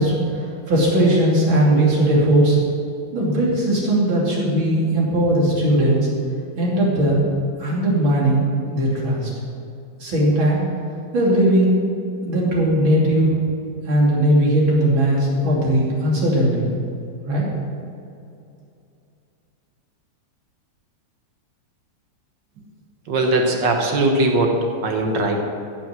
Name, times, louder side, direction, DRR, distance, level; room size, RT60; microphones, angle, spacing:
voice 1, 0.0-2.6 3.1-6.1 6.6-7.2 7.6-8.4 8.7-9.3 10.0-10.6 11.1-11.7 12.2-13.4 13.9-16.7 17.3-17.5, right 1 dB, 85° right, -5 dB, 3.6 m, -18 dB
voice 2, 23.1-24.6 24.8-25.4, right 2 dB, 65° right, 2 dB, 1.8 m, -19 dB
15.0 x 6.1 x 7.4 m, 2.6 s
omnidirectional pair, 2.1 m